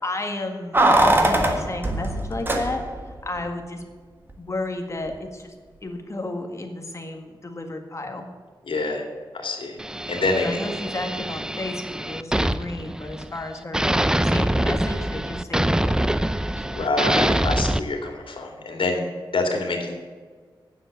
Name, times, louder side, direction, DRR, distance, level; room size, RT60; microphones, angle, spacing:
voice 1, 0.0-2.8 3.2-3.8 4.4-5.5 5.8-8.3 10.3-13.8 14.2-16.1 16.7-16.8, left 2 dB, 35° left, 3 dB, 1.8 m, -32 dB
Keys jangling, 0.7-3.1 3.4-3.5, right 1 dB, 25° right, 1.5 m, -21 dB
voice 2, 8.7-9.0 9.3-9.8 10.1-10.5 16.7-19.1 19.3-20.0, left 3 dB, 85° left, 2 dB, 2.5 m, -26 dB
sound 1, 9.8-13.4 13.7-17.8, right 1 dB, 10° right, 0.4 m, -24 dB
9.8 x 7.5 x 9.0 m, 1.5 s
wide cardioid pair, 115°, 9 cm